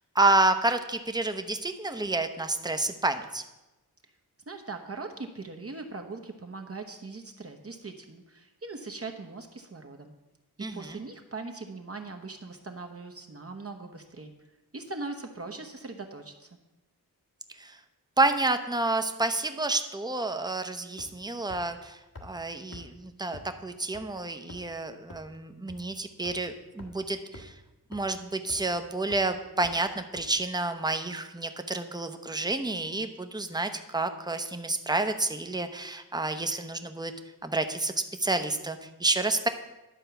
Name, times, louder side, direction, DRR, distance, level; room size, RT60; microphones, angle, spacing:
voice 1, 0.1-3.4 10.6-11.0 17.6-17.8 18.2-27.5 27.9-37.1 37.4-37.9 38.2-39.5, right 2 dB, 10° right, 8 dB, 0.7 m, -29 dB
voice 2, 4.5-10.1 10.7-14.3 14.7-16.6, right 3 dB, 40° right, 4 dB, 0.9 m, -40 dB
sound 1, 21.0-21.2 21.5-21.6 22.2-22.3 22.7-22.8 23.3-23.4 23.9-24.0 24.5-24.7 25.1-25.2 25.7-25.8 26.3-26.4 26.8-26.9 27.3-27.4 27.9-28.0 28.5-28.7 29.1-29.2 29.6-29.7 30.2-30.3, left 2 dB, 65° left, 1.7 m, -44 dB
11.0 x 4.5 x 6.9 m, 1.0 s
wide cardioid pair, 75°, 37 cm